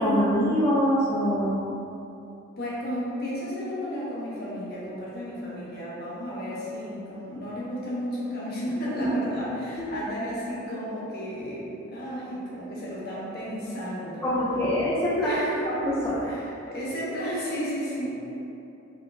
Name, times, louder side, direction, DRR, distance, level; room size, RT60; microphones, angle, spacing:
voice 1, 0.0-1.6 9.0-9.1 9.8-9.9 14.2-16.3, equal, 10° left, -8 dB, 0.4 m, -24 dB
voice 2, 2.6-14.3 15.2-15.7 16.2-18.1, equal, 50° left, -7 dB, 1.1 m, -33 dB
4.5 x 3.6 x 2.6 m, 2.9 s
head